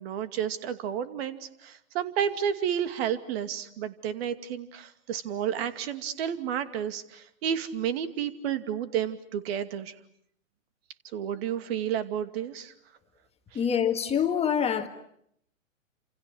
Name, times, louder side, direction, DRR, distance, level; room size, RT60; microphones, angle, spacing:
voice 1, 0.0-9.9 11.1-12.7, right 9 dB, 50° right, 2.5 m, -31 dB
voice 2, 13.5-14.9, left 8 dB, 15° left, 1.9 m, -25 dB
29.5 x 28.0 x 6.3 m
hypercardioid pair, 130°, 40 cm